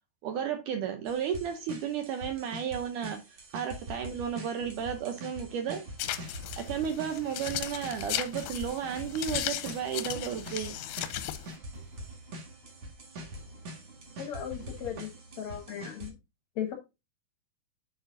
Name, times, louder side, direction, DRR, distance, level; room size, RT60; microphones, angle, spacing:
voice 1, 0.2-3.2 3.5-5.8 6.6-10.8, right 8 dB, 75° right, 2.0 m, -33 dB
sound 1, 1.1-16.1, equal, 50° right, 2.3 m, -45 dB
sound 2, 4.6-16.0, right 1 dB, 15° right, 3.5 m, -51 dB
sound 3, 6.0-11.6, left 13 dB, 80° left, 2.3 m, -36 dB
voice 2, 14.2-16.1 16.6-16.7, left 9 dB, 65° left, 1.9 m, -37 dB
7.1 x 6.7 x 2.6 m
omnidirectional pair, 4.3 m